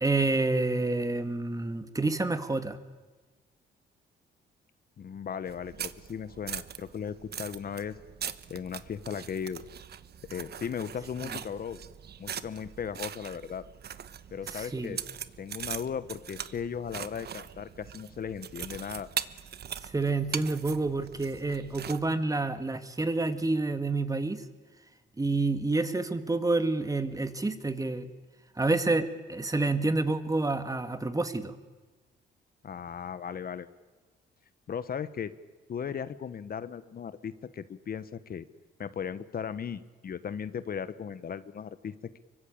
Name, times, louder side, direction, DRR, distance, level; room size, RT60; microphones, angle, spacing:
voice 1, 0.0-2.8 14.5-15.0 19.8-24.4 25.2-28.1 28.6-31.5, right 3 dB, 15° right, 9 dB, 2.1 m, -28 dB
voice 2, 5.0-8.0 8.5-9.6 10.3-11.8 12.2-13.6 14.3-15.0 15.4-19.1 32.6-33.7 34.7-35.3 35.7-38.5 38.8-42.2, left 7 dB, 50° left, 13 dB, 1.2 m, -37 dB
sound 1, 5.5-22.1, right 9 dB, 55° right, 1.2 m, -41 dB
25.5 x 23.0 x 8.7 m, 1.3 s
cardioid pair, 90°, 20 cm